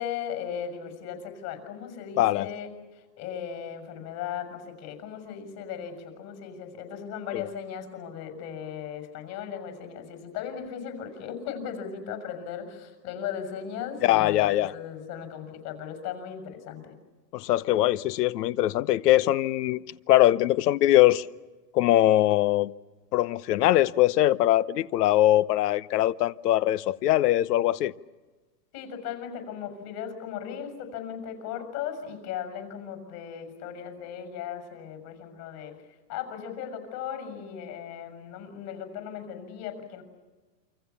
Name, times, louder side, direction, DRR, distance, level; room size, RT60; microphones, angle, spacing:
voice 1, 0.0-16.9 28.7-35.8 36.1-40.0, left 8 dB, 45° left, 7.0 m, -37 dB
voice 2, 14.0-14.7 17.3-19.8 20.1-21.3 21.7-22.7 23.1-27.9, left 14 dB, 70° left, 1.0 m, -22 dB
29.0 x 25.5 x 7.1 m
hypercardioid pair, 125°, 49 cm